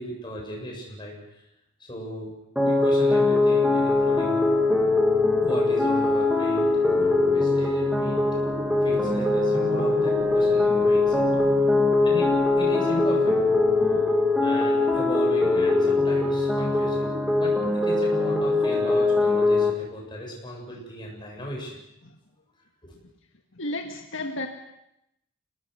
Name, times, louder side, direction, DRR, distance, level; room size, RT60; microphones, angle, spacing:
voice 1, 0.0-1.4 1.8-2.3 2.6-4.4 5.4-6.6 7.0-8.2 8.8-11.2 12.0-13.3 14.4-17.1 17.3-21.8 22.8-22.9, equal, 20° left, -1 dB, 8.0 m, -36 dB
sound 1, 2.6-19.7, left 3 dB, 5° right, 2.8 m, -22 dB
sound 2, 3.8-14.0, right 1 dB, 50° right, 1.5 m, -38 dB
voice 2, 23.5-24.5, left 1 dB, 65° left, 3 dB, 1.9 m, -34 dB
28.5 x 19.5 x 6.9 m, 0.83 s
head